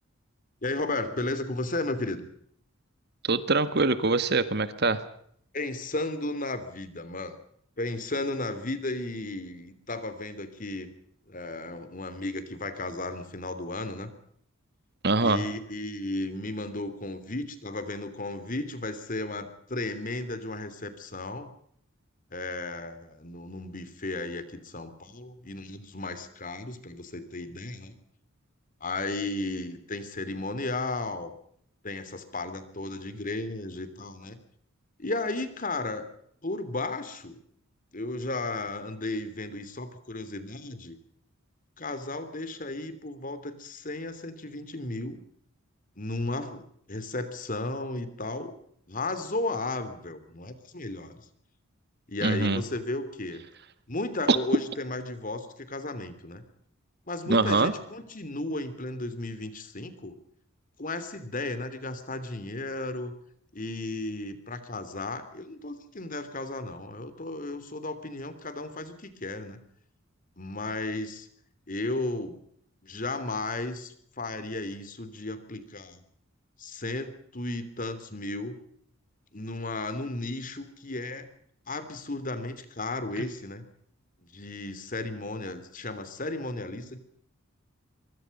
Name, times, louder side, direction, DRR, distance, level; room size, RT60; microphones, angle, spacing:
voice 1, 0.6-2.2 5.5-7.4 7.8-10.9 11.3-14.1 15.2-21.5 22.3-28.0 28.8-31.3 31.8-34.4 35.0-36.1 36.4-37.4 37.9-41.0 41.8-45.2 46.0-48.5 48.9-51.2 52.1-53.4 53.9-56.4 57.1-60.2 60.8-63.1 63.5-69.6 70.4-71.3 71.7-72.4 72.8-76.0 76.6-78.5 79.3-81.3 81.7-83.6 84.2-87.0, left 2 dB, 40° left, 12 dB, 3.1 m, -34 dB
voice 2, 3.2-5.0 15.0-15.4 52.2-52.6 54.3-54.4 57.3-57.7 83.2-83.3, right 3 dB, 50° right, 13 dB, 1.6 m, -23 dB
24.0 x 23.5 x 5.5 m, 0.66 s
head